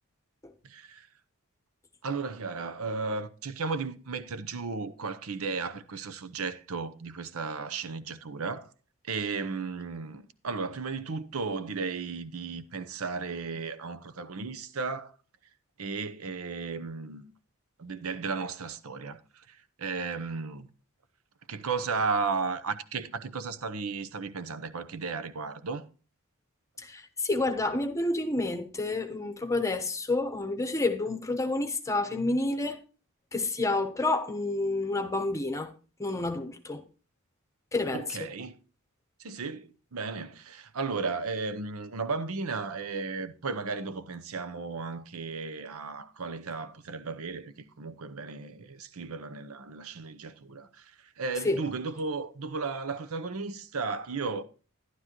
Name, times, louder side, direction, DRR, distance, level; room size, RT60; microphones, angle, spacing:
voice 1, 0.6-1.1 2.0-8.7 9.0-15.1 15.8-17.2 17.8-19.2 19.5-20.7 21.5-25.8 37.9-38.6 39.2-54.4, right 4 dB, 80° right, 0.8 m, -34 dB
voice 2, 26.8-32.8 33.3-35.7 36.0-36.8 37.7-38.3 51.4-51.6, left 2 dB, 15° left, 1.0 m, -29 dB
12.0 x 11.5 x 3.0 m
head